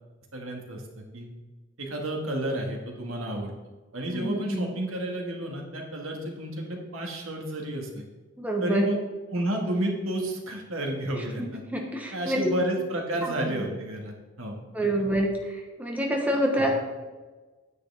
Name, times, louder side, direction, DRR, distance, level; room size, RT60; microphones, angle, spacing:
voice 1, 0.3-1.3 1.8-3.5 3.9-8.0 8.6-9.0 9.3-11.6 12.1-14.6 14.9-15.0 16.6-16.8, right 1 dB, 80° right, 1 dB, 2.0 m, -31 dB
voice 2, 4.1-4.7 8.4-8.8 11.7-12.5 13.2-13.3 14.7-15.3 15.8-16.8, equal, 5° right, 0 dB, 1.2 m, -26 dB
9.9 x 9.3 x 3.6 m, 1.3 s
head